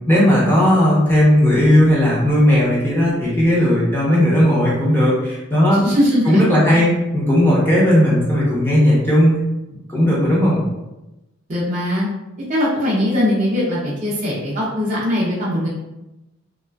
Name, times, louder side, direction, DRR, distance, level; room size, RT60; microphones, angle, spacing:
voice 1, 0.1-5.8 6.3-9.4 9.9-10.6, equal, 10° left, -7 dB, 0.7 m, -15 dB
voice 2, 5.8-6.4 6.7-6.8 8.3-8.4 11.5-12.1 12.5-15.7, left 1 dB, 35° right, -8 dB, 0.5 m, -20 dB
2.9 x 2.3 x 2.2 m, 0.98 s
head